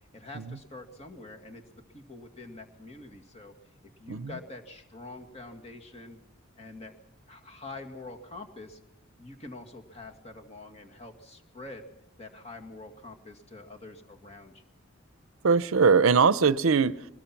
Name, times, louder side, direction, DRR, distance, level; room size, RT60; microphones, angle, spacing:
voice 1, 0.1-1.7 1.9-3.7 4.0-6.2 6.6-6.9 7.3-8.8 9.2-11.9 12.2-14.6, left 2 dB, 30° left, 3 dB, 2.1 m, -45 dB
voice 2, 15.4-17.1, right 5 dB, 80° right, 16 dB, 0.7 m, -22 dB
22.0 x 20.0 x 5.9 m, 0.81 s
head